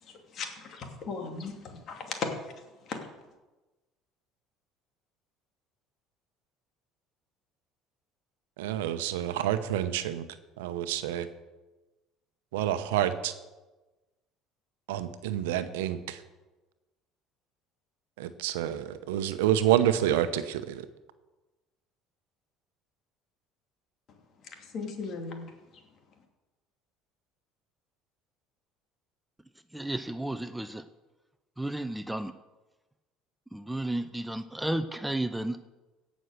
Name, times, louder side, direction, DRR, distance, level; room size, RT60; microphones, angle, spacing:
voice 1, 0.3-2.3 2.9-3.0 24.6-25.5, left 5 dB, 50° left, 4 dB, 2.6 m, -36 dB
voice 2, 8.6-10.3 10.6-11.3 12.5-13.3 14.9-16.2 18.2-20.8, right 11 dB, 85° right, 11 dB, 0.8 m, -28 dB
voice 3, 29.7-30.8 31.6-32.3 33.5-35.6, right 1 dB, 5° right, 11 dB, 0.6 m, -32 dB
17.0 x 6.3 x 6.7 m, 1.1 s
supercardioid pair, 80°, 0 cm